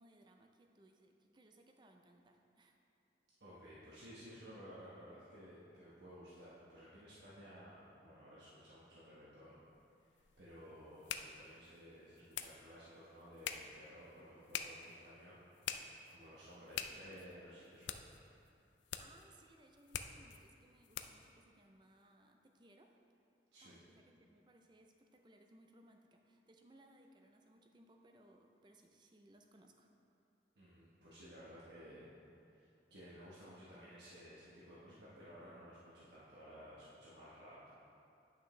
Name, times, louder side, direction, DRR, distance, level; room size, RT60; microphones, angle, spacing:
voice 1, 0.0-2.8 16.7-17.2 19.0-22.9 23.6-29.9, right 1 dB, 25° right, 3 dB, 0.5 m, -65 dB
voice 2, 3.4-9.6 10.0-10.1 10.4-15.4 16.1-18.0 23.5-23.8 30.6-32.0 32.5-37.7, equal, 75° right, -9 dB, 1.1 m, -56 dB
sound 1, 9.7-21.3, left 8 dB, 90° left, 0.4 m, -48 dB
9.5 x 5.8 x 3.2 m, 2.6 s
head